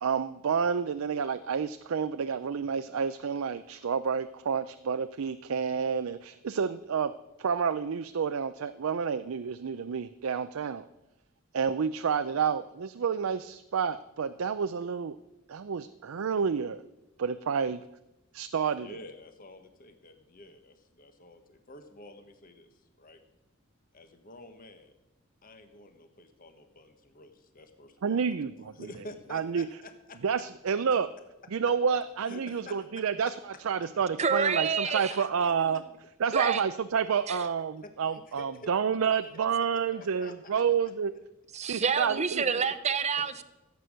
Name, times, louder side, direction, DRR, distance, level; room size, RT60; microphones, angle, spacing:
voice 1, 0.0-7.1 7.4-10.8 11.5-15.2 15.5-16.8 17.2-17.8 18.3-19.0 28.0-28.7 29.3-29.7 30.2-31.1 31.5-35.8 36.2-37.7 38.0-41.1 41.7-42.6, right 6 dB, 85° right, 11 dB, 0.5 m, -29 dB
voice 2, 18.7-23.2 23.9-25.0 25.4-30.2 32.2-33.0 34.6-35.5 37.3-38.7 39.1-39.2 39.6-40.6, left 2 dB, 45° left, 7 dB, 1.4 m, -49 dB
voice 3, 34.2-35.1 36.3-36.6 37.3-37.4 41.5-43.4, right 6 dB, 35° right, 12 dB, 0.7 m, -28 dB
15.5 x 8.3 x 6.3 m, 0.96 s
head